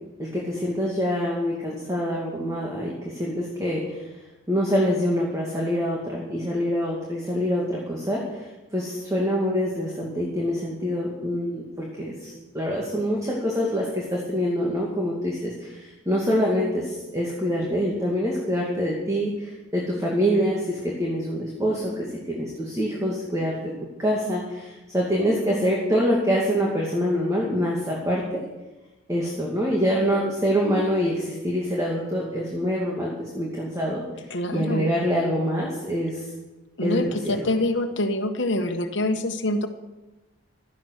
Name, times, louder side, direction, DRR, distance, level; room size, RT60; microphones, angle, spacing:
voice 1, 0.2-4.1 4.5-23.5 24.0-28.4 29.1-34.0 34.5-36.2 36.8-37.5, equal, 15° right, -3 dB, 2.4 m, -25 dB
voice 2, 34.3-34.9 36.8-39.7, left 1 dB, 60° left, 6 dB, 1.4 m, -25 dB
16.5 x 12.0 x 6.6 m, 1.1 s
head